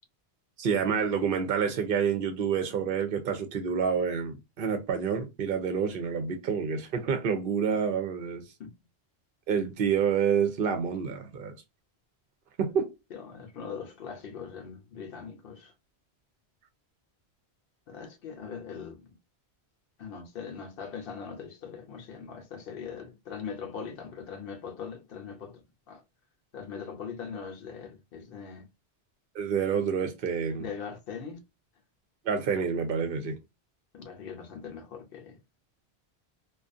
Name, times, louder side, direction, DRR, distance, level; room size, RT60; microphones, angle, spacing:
voice 1, 0.6-8.4 9.5-11.5 12.6-12.9 29.4-30.6 32.3-33.4, right 6 dB, 60° right, 0.7 m, -28 dB
voice 2, 13.1-15.7 17.9-19.2 20.0-26.0 26.5-28.7 30.6-31.4 33.9-35.4, left 6 dB, 60° left, 0.8 m, -41 dB
2.4 x 2.3 x 2.4 m
omnidirectional pair, 1.1 m